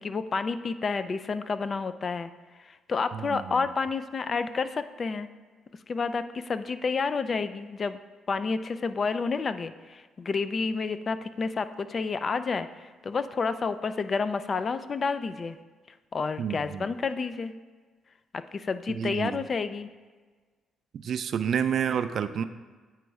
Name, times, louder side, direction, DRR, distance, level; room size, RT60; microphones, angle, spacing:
voice 1, 0.0-2.3 2.6-5.3 5.9-8.0 8.3-15.6 16.1-17.5 18.3-19.9, left 4 dB, 40° left, 12 dB, 0.3 m, -30 dB
voice 2, 3.1-3.6 16.4-16.9 18.9-19.4 21.0-22.4, right 8 dB, 60° right, 11 dB, 0.4 m, -29 dB
8.9 x 3.1 x 4.6 m, 1.4 s
cardioid pair, 90°, 0 cm